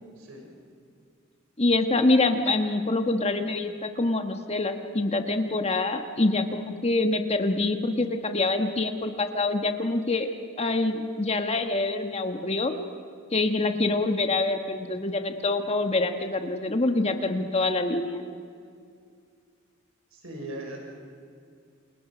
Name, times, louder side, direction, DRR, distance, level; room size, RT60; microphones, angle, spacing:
voice 1, 0.2-0.5 20.1-20.9, right 1 dB, 85° right, 1 dB, 5.9 m, -39 dB
voice 2, 1.6-10.3 10.6-12.7 13.3-18.2, left 2 dB, 30° left, 6 dB, 1.5 m, -25 dB
29.0 x 28.5 x 6.3 m, 2.2 s
head